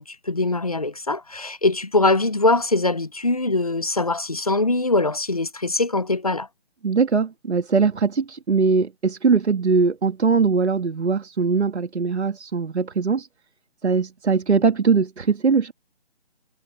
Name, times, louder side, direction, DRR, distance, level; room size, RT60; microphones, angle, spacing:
voice 1, 0.0-6.5, left 2 dB, 35° left, 0.6 m, -22 dB
voice 2, 6.8-13.3 13.8-15.7, right 5 dB, 75° right, 1.8 m, -21 dB
hypercardioid pair, 180°, 34 cm